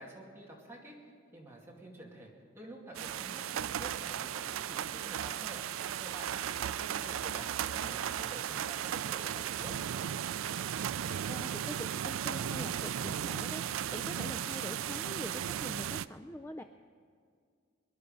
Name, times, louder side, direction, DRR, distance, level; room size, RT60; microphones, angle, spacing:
voice 1, 0.0-5.6 6.0-9.9, right 1 dB, 10° right, -3 dB, 2.4 m, -49 dB
sound 1, 2.9-16.0, right 9 dB, 85° right, 0.4 m, -36 dB
voice 2, 11.3-16.6, left 1 dB, 10° left, 7 dB, 0.4 m, -44 dB
22.5 x 11.0 x 5.4 m, 2.2 s
head